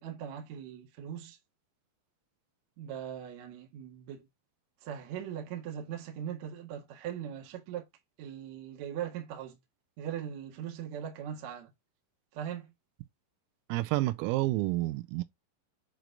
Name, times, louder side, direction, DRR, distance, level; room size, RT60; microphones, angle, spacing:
voice 1, 0.0-1.4 2.8-4.3 4.8-7.9 8.2-9.6 10.0-11.7 12.3-12.7, right 9 dB, 65° right, 1.8 m, -40 dB
voice 2, 13.7-15.2, right 18 dB, 85° right, 3.3 m, -29 dB
8.1 x 3.1 x 3.8 m
omnidirectional pair, 5.9 m